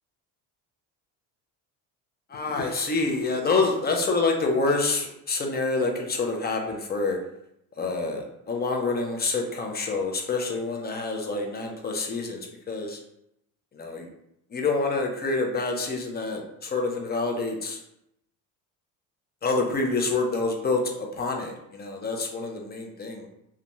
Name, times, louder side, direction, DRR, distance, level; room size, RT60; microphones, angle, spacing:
voice 1, 2.3-7.2 7.8-12.4 12.7-13.0 13.7-14.1 14.5-17.8 19.4-23.3, left 3 dB, 25° left, 2 dB, 0.5 m, -27 dB
2.4 x 2.2 x 2.9 m, 0.79 s
supercardioid pair, 95°, 41 cm